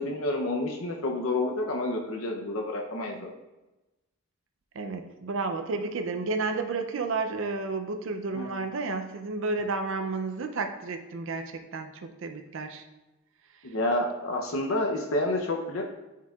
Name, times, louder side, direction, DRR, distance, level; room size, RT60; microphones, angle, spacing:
voice 1, 0.0-3.3 8.4-8.5 13.6-15.8, left 1 dB, 85° left, 1 dB, 0.7 m, -29 dB
voice 2, 4.8-11.4 11.7-12.8, right 3 dB, 70° right, 7 dB, 0.5 m, -31 dB
9.5 x 4.6 x 2.3 m, 1.0 s
head